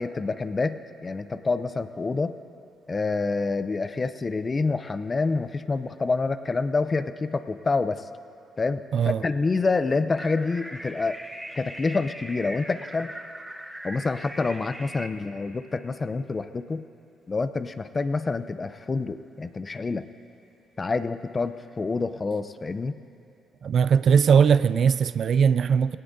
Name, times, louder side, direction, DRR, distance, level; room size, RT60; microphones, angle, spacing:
voice 1, 0.0-2.3 2.9-8.0 8.6-11.2 11.6-13.1 13.8-16.8 17.3-20.1 20.8-22.9, left 3 dB, 30° left, 0.5 m, -27 dB
voice 2, 8.9-9.2 23.6-26.0, right 7 dB, 60° right, 0.3 m, -20 dB
sound 1, 10.2-15.1, right 1 dB, 10° right, 0.8 m, -40 dB
18.0 x 17.5 x 2.7 m
cardioid pair, 90°, 0 cm